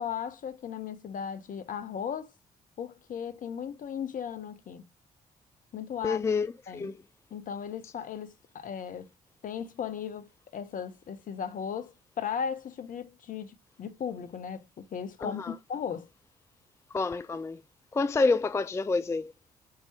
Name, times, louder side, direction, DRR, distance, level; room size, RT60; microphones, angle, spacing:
voice 1, 0.0-2.3 2.8-4.8 5.7-6.2 6.7-6.9 7.3-9.1 9.4-15.4 15.7-16.1, left 7 dB, 45° left, 0.7 m, -36 dB
voice 2, 6.0-7.0 7.8-7.9 15.2-15.6 16.9-17.6 17.9-19.3, left 3 dB, 15° left, 0.3 m, -28 dB
4.1 x 3.8 x 2.8 m
figure-of-eight pair, 40°, 19 cm